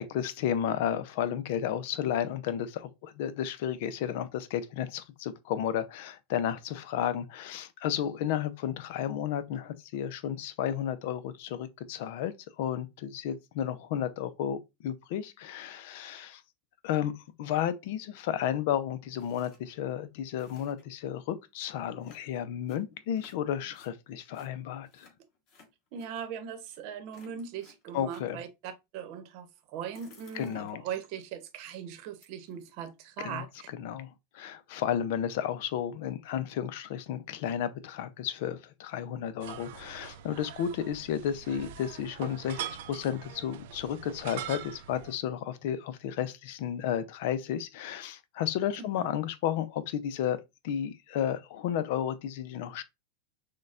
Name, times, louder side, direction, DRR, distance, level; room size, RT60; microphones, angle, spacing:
voice 1, 0.0-16.4 16.8-17.1 17.4-25.1 27.9-28.4 30.3-30.8 33.2-33.4 33.8-50.4 50.6-52.8, left 10 dB, 65° left, 0.5 m, -32 dB
sound 1, 19.2-19.6 19.9-20.0 20.2-21.0 22.0-23.9 24.3-26.1 26.6-26.8 27.1-28.4 29.7-31.2 31.7-31.8 32.2-32.8, left 4 dB, 50° left, 2.7 m, -58 dB
voice 2, 25.9-33.7 48.8-49.1, right 8 dB, 55° right, 0.8 m, -40 dB
sound 2, 39.4-45.1, right 11 dB, 70° right, 0.5 m, -43 dB
6.4 x 2.2 x 2.4 m
supercardioid pair, 130°, 0 cm